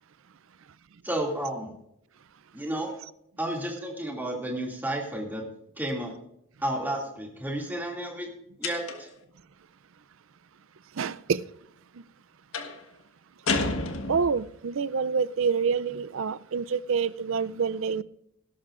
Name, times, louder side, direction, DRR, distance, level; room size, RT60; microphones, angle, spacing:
voice 1, 1.0-1.7 2.5-2.9 3.4-5.4 5.8-6.1 6.6-8.3 8.6-9.1, right 1 dB, 10° right, 2.4 m, -31 dB
sound 1, 8.6-9.2 12.5-12.8 13.5-14.5, left 3 dB, 70° left, 1.4 m, -30 dB
voice 2, 11.0-11.4 14.1-18.0, right 5 dB, 60° right, 0.5 m, -27 dB
18.0 x 11.5 x 2.5 m
head